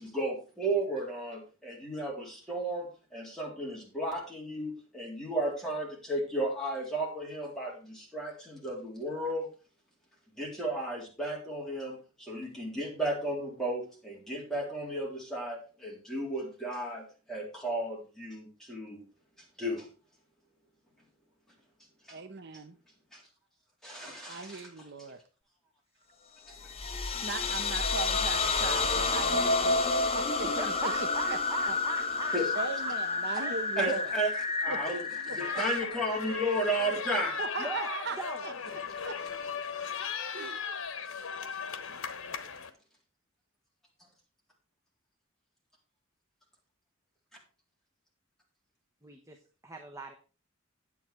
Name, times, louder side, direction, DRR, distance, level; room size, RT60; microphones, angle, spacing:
voice 1, 0.0-9.5 10.4-19.0 19.6-19.9 22.1-22.2 23.1-23.2 23.8-24.7 32.3-32.5 33.8-37.4, right 1 dB, ahead, -3 dB, 3.7 m, -34 dB
voice 2, 22.1-22.8 24.3-25.2 27.2-29.9 30.1-31.8 32.5-34.2 34.7-34.8 35.3-35.6 37.4-38.2 38.4-38.5 39.1-39.2 40.3-40.6, right 3 dB, 55° right, 8 dB, 0.9 m, -38 dB
sound 1, 26.5-37.2, left 3 dB, 30° left, 1.1 m, -30 dB
voice 3, 30.4-32.9 33.4-33.7 37.6-38.4 49.0-50.1, right 3 dB, 15° right, 3 dB, 1.0 m, -40 dB
sound 2, 35.4-42.7, left 6 dB, 85° left, 1.2 m, -37 dB
9.8 x 7.9 x 4.5 m, 0.35 s
head